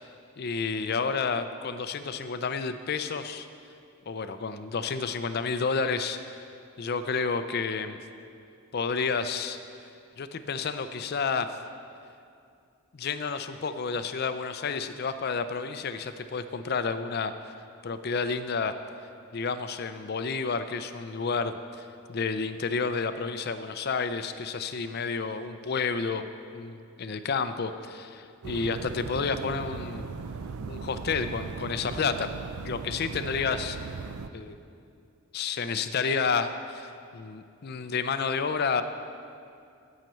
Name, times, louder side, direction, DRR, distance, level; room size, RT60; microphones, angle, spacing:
voice 1, 0.4-3.5 4.1-6.4 6.8-8.0 8.7-9.6 10.2-11.5 12.9-17.5 17.8-18.7 19.3-26.3 26.5-30.1 30.7-32.3 32.6-33.8 34.3-34.6 35.3-38.8, left 5 dB, 45° left, 10 dB, 0.4 m, -30 dB
sound 1, 28.4-34.3, right 4 dB, 75° right, 0.5 m, -38 dB
9.1 x 5.7 x 7.6 m, 2.5 s
head